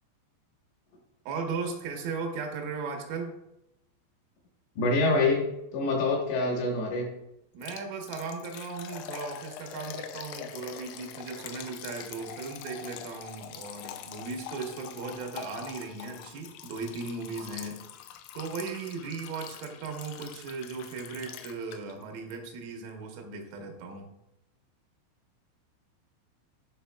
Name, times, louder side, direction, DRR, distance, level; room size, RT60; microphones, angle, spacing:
voice 1, 1.3-3.3 7.5-17.8 18.4-24.1, right 4 dB, 80° right, 2 dB, 3.6 m, -37 dB
voice 2, 4.8-5.4 5.7-7.1, left 3 dB, 70° left, -1 dB, 3.1 m, -25 dB
Liquid, 7.6-22.0 22.3-22.4 22.9-23.0, left 10 dB, 90° left, 3.3 m, -44 dB
11.0 x 5.6 x 2.2 m, 0.87 s
omnidirectional pair, 5.9 m